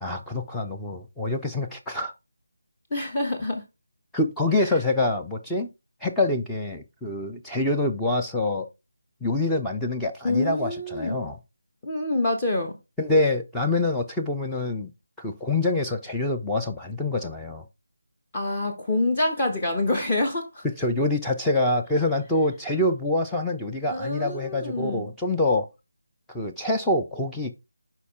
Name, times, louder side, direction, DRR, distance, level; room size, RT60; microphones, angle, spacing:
voice 1, 0.0-2.1 4.1-5.7 6.0-8.7 9.2-11.4 13.0-14.9 15.2-17.6 20.8-25.7 26.3-27.5, left 2 dB, 5° left, 0.5 m, -26 dB
voice 2, 2.9-3.6 4.6-4.8 10.2-11.2 11.8-12.8 18.3-20.7 23.9-25.1, left 2 dB, 20° left, 1.1 m, -26 dB
8.2 x 4.9 x 3.5 m
figure-of-eight pair, 160°, 0 cm